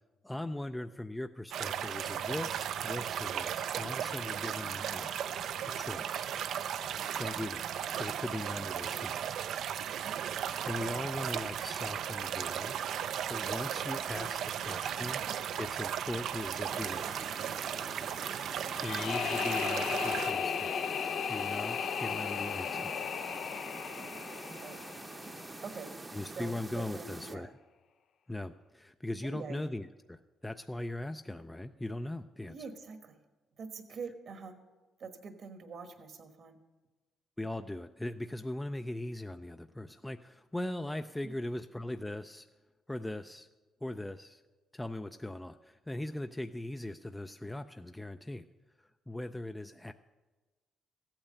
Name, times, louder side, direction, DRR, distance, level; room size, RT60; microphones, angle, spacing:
voice 1, 0.2-5.1 5.7-6.3 7.2-7.6 8.0-9.4 10.3-12.8 13.3-14.4 14.7-15.2 15.5-17.3 18.7-20.7 21.0-23.0 26.1-27.5 28.3-32.6 37.4-42.5 42.9-43.5 43.8-44.4 44.7-48.5 48.8-49.9, left 1 dB, 10° left, 8 dB, 0.4 m, -40 dB
sound 1, 1.5-20.3, right 9 dB, 75° right, 0.5 m, -36 dB
voice 2, 14.1-15.2 24.6-24.8 25.6-25.9 26.4-27.5 29.2-29.6 32.5-33.2 33.6-34.6 35.0-36.6, right 4 dB, 60° right, 8 dB, 1.2 m, -45 dB
sound 2, 16.6-27.4, right 2 dB, 20° right, 0.8 m, -46 dB
sound 3, 18.7-25.7, left 7 dB, 65° left, 0.5 m, -35 dB
14.5 x 8.9 x 6.6 m, 1.2 s
cardioid pair, 90°, 0 cm